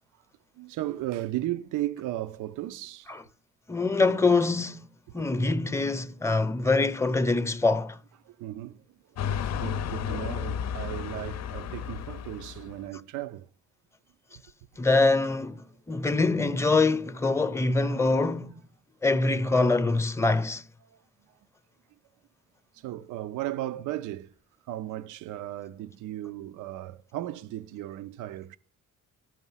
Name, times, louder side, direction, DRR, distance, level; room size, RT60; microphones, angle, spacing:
voice 1, 0.6-3.1 5.1-5.3 8.3-8.8 9.1-13.5 14.3-14.4 20.9-21.0 22.7-24.3 24.7-28.6, right 14 dB, 85° right, 0.6 m, -35 dB
voice 2, 3.7-4.9 5.1-8.0 14.8-18.6 19.0-20.6, left 3 dB, 10° left, 0.7 m, -24 dB
sound 1, 9.2-12.9, left 8 dB, 60° left, 0.6 m, -33 dB
13.0 x 5.5 x 5.6 m
cardioid pair, 90°, 30 cm